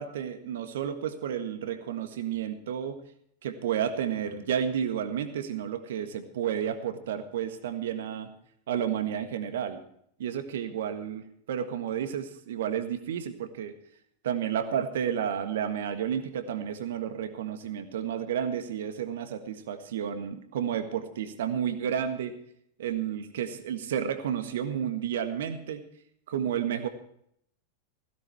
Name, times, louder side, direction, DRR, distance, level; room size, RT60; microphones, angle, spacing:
voice 1, 0.0-3.0 3.4-8.3 8.7-9.8 10.2-13.7 14.2-22.3 22.8-25.8 26.3-26.9, right 9 dB, 60° right, 9 dB, 1.6 m, -31 dB
16.0 x 16.0 x 3.5 m, 0.70 s
figure-of-eight pair, 90°, 0 cm